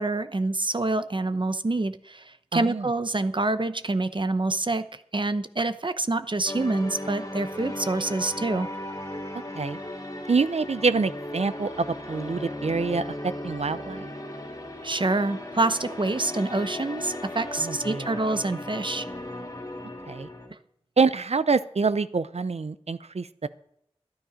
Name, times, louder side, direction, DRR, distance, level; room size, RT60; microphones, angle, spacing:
voice 1, 0.0-8.7 14.8-19.1, right 2 dB, 50° right, 11 dB, 0.8 m, -27 dB
voice 2, 2.5-2.9 9.5-9.8 10.3-14.1 17.6-18.1 20.1-20.3 21.0-23.5, right 4 dB, 80° right, 14 dB, 0.6 m, -26 dB
sound 1, 6.5-20.5, left 1 dB, 35° left, 3.1 m, -36 dB
12.5 x 12.0 x 5.1 m, 0.71 s
wide cardioid pair, 50°, 11 cm